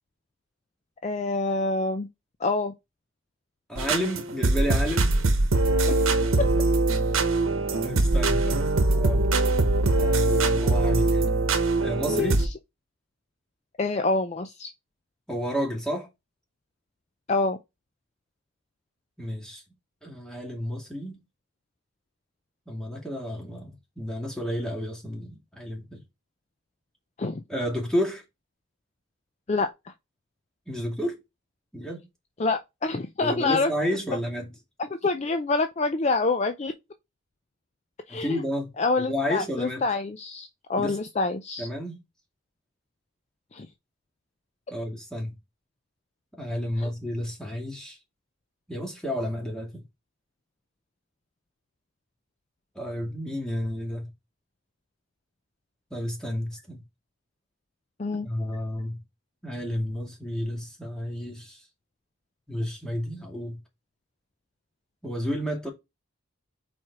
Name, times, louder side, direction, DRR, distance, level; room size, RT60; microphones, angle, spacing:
voice 1, 1.0-2.1 2.4-2.7 5.9-6.1 12.0-12.5 13.8-14.7 17.3-17.6 27.2-27.4 29.5-29.9 32.4-33.7 34.9-36.7 38.1-38.4 38.8-41.7 43.5-43.7 46.8-46.9 58.0-58.3, left 3 dB, 30° left, 0.4 m, -27 dB
voice 2, 3.7-5.2 7.7-9.3 10.0-11.3 11.8-12.4 15.3-16.1 19.2-19.6 20.0-21.2 22.7-26.0 27.5-28.2 30.7-31.2 31.7-32.0 33.2-34.5 38.1-38.7 39.0-39.8 40.8-41.0 41.6-42.0 44.7-45.4 46.4-48.0 48.7-49.8 52.8-54.1 55.9-56.8 58.2-59.0 59.4-61.6 62.5-63.6 65.0-65.7, equal, 5° left, 2.0 m, -31 dB
sound 1, 3.8-12.5, right 2 dB, 80° right, 1.1 m, -22 dB
4.7 x 4.4 x 4.6 m
head